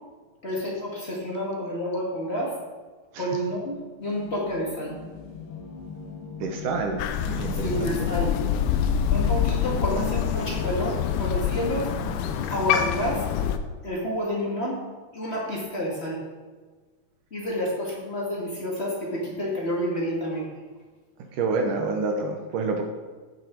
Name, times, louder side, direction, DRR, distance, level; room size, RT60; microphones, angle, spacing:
voice 1, 0.4-2.5 3.2-4.9 7.6-8.3 9.1-11.9 12.5-13.2 13.8-14.8 15.1-16.2 17.3-20.5, equal, 40° left, -4 dB, 0.9 m, -29 dB
sound 1, 4.0-13.3, left 3 dB, 60° left, 2.5 m, -41 dB
voice 2, 6.4-8.1 21.3-22.8, right 3 dB, 70° right, 3 dB, 2.2 m, -28 dB
Crow, 7.0-13.6, left 8 dB, 85° left, 2.5 m, -26 dB
15.5 x 6.4 x 4.6 m, 1.4 s
omnidirectional pair, 4.4 m